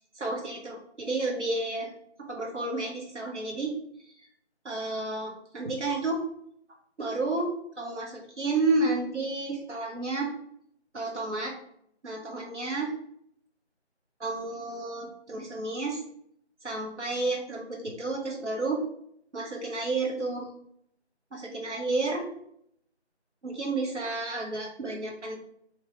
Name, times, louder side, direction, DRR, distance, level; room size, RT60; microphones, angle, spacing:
voice 1, 0.1-1.9 2.3-3.7 4.1-4.2 4.6-6.2 7.0-10.3 10.9-11.5 12.0-12.9 14.2-16.0 16.6-18.8 19.3-20.5 21.3-22.3 23.4-25.4, right 2 dB, 85° right, -1 dB, 1.4 m, -31 dB
3.6 x 3.3 x 3.2 m, 0.70 s
figure-of-eight pair, 170°, 34 cm